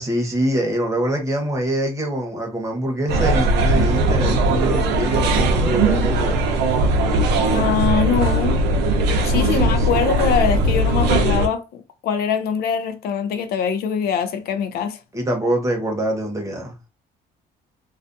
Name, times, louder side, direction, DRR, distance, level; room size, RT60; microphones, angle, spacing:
voice 1, 0.0-6.4 9.2-9.9 15.1-16.7, right 1 dB, 20° right, 0.9 m, -24 dB
sound 1, 3.1-11.5, right 2 dB, 80° right, 0.6 m, -19 dB
voice 2, 7.5-8.7 9.2-15.0, left 7 dB, 65° left, 0.4 m, -23 dB
2.3 x 2.3 x 2.5 m
cardioid pair, 110°, 17 cm